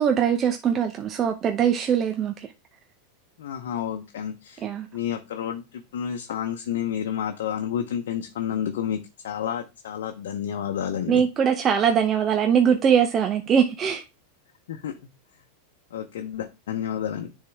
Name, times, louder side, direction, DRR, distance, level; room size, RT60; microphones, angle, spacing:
voice 1, 0.0-2.5 4.6-4.9 11.1-14.0, right 8 dB, 30° right, 0.7 m, -22 dB
voice 2, 3.4-4.6 4.9-11.2 14.7-15.0 15.9-17.3, left 9 dB, 80° left, 0.8 m, -30 dB
9.7 x 3.6 x 3.5 m
hypercardioid pair, 115°, 0 cm